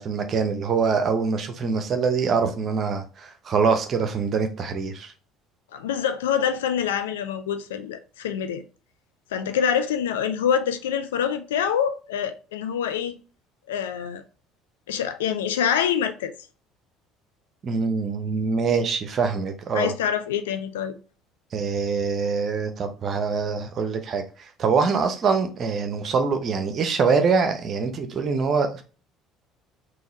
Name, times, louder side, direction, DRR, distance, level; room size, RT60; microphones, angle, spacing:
voice 1, 0.0-5.1 17.6-19.9 21.5-28.8, right 5 dB, 40° right, 0.8 m, -24 dB
voice 2, 5.7-8.6 9.3-13.2 13.7-14.2 14.9-16.3 19.7-20.9, left 8 dB, 70° left, 0.5 m, -25 dB
4.0 x 2.7 x 3.9 m
figure-of-eight pair, 60°, 0 cm